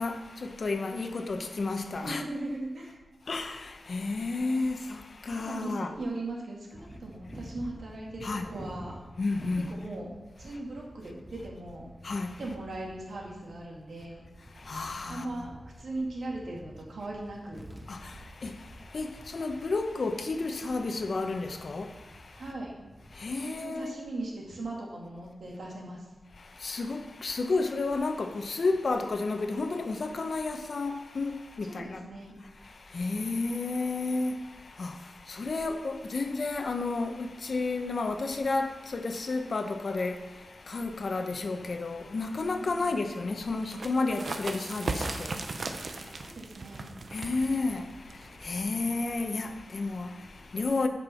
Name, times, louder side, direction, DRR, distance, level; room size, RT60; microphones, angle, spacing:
voice 1, 0.0-2.2 3.3-5.9 8.2-8.5 9.2-9.7 12.0-12.4 14.5-15.5 17.9-22.5 23.1-24.0 26.4-32.1 32.6-46.3 47.1-50.9, left 3 dB, 60° left, 0.9 m, -32 dB
voice 2, 2.0-3.0 5.4-9.0 9.7-10.1 10.4-11.9 12.4-14.2 15.1-17.7 22.4-22.8 23.4-26.0 31.7-32.4 42.8-43.0 46.1-46.9, right 2 dB, 80° right, 2.2 m, -38 dB
sound 1, 6.7-23.5, equal, 5° right, 1.2 m, -50 dB
sound 2, 43.6-49.0, right 3 dB, 65° right, 0.7 m, -37 dB
9.2 x 5.4 x 5.7 m
wide cardioid pair, 85°, 0 cm